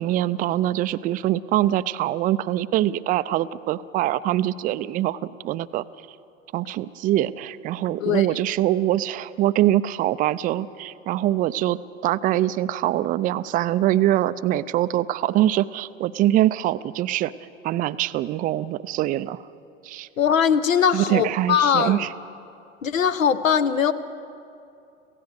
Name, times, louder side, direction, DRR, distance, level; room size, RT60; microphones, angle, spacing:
voice 1, 0.0-5.8 6.5-17.3 17.6-19.4 19.8-20.1 20.9-22.1, right 13 dB, 20° right, 15 dB, 0.4 m, -23 dB
voice 2, 20.2-22.1 22.8-23.9, left 7 dB, 75° left, 13 dB, 1.1 m, -21 dB
27.0 x 16.0 x 6.4 m, 2.6 s
figure-of-eight pair, 90°, 40 cm